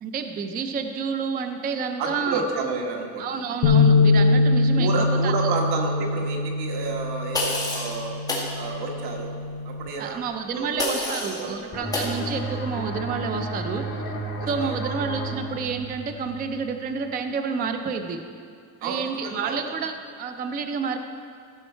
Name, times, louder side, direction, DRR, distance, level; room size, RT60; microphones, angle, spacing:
voice 1, 0.0-2.4 3.2-5.3 10.0-14.0 14.5-18.2 18.8-19.9 20.2-21.0, right 5 dB, 25° right, 7 dB, 0.3 m, -29 dB
voice 2, 2.0-3.4 4.7-8.1 8.6-9.3 9.6-10.2 10.5-10.7 11.0-11.5 14.4-14.9 18.8-19.6, right 4 dB, 85° right, 1 dB, 1.6 m, -30 dB
sound 1, 3.6-9.9, left 3 dB, 80° left, 1.2 m, -22 dB
sound 2, 7.3-7.9 8.3-8.5 10.8-11.4 11.9-12.1, left 2 dB, 10° left, 1.7 m, -27 dB
sound 3, 11.7-17.1, right 2 dB, 35° left, 1.9 m, -33 dB
15.5 x 5.5 x 4.4 m, 2.4 s
cardioid pair, 170°, 39 cm